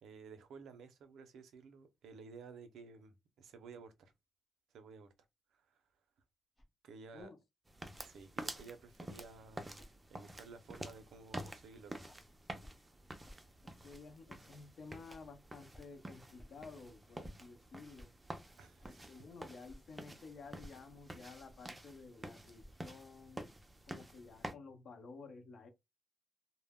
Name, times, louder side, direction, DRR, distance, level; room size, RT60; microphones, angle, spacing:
voice 1, 0.0-4.1 4.7-5.1 5.5-5.9 6.8-7.3 8.0-9.8 10.1-12.1 18.6-19.1, right 5 dB, 90° right, 0.5 m, -54 dB
sound 1, 6.6-6.7 7.2-7.3 7.9-8.1 8.5-8.7 9.1-9.3 9.8-9.9 10.2-10.4 10.8-11.0 11.4-11.6 12.1-12.2 12.6-12.7 13.2-13.4 13.9-14.0 14.5-14.6 15.1-15.2 15.7-15.8 16.4-16.5 17.2-17.3 18.0-18.1 18.8-18.9 19.7-19.8 20.6-20.7 21.4-21.5 22.6-22.8, equal, 15° left, 0.8 m, -56 dB
sound 2, 7.7-24.5, right 1 dB, 15° right, 0.4 m, -49 dB
voice 2, 13.8-18.1 18.9-23.5 23.9-25.7, left 4 dB, 60° left, 0.6 m, -53 dB
2.1 x 2.0 x 3.5 m
cardioid pair, 115°, 0 cm